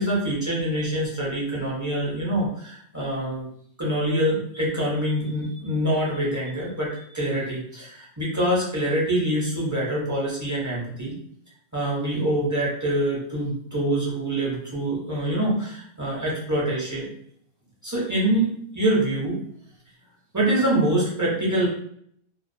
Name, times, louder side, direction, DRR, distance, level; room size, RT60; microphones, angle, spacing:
voice 1, 0.0-3.5 3.8-11.1 11.7-17.1 17.8-19.4 20.3-21.7, right 1 dB, 20° right, -6 dB, 0.5 m, -25 dB
2.3 x 2.3 x 2.5 m, 0.67 s
omnidirectional pair, 1.2 m